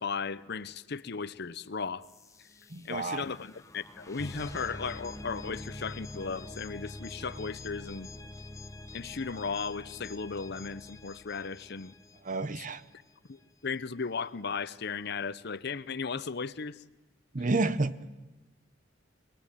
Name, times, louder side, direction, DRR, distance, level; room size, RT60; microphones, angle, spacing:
voice 1, 0.0-2.1 2.9-8.1 8.9-11.9 12.6-12.7 13.3-16.8, left 5 dB, 60° left, 0.8 m, -36 dB
sound 1, 2.0-12.8, left 2 dB, 15° left, 1.1 m, -45 dB
voice 2, 2.7-3.2 12.2-12.8 17.3-17.9, right 3 dB, 40° right, 0.9 m, -29 dB
23.5 x 20.5 x 9.2 m
head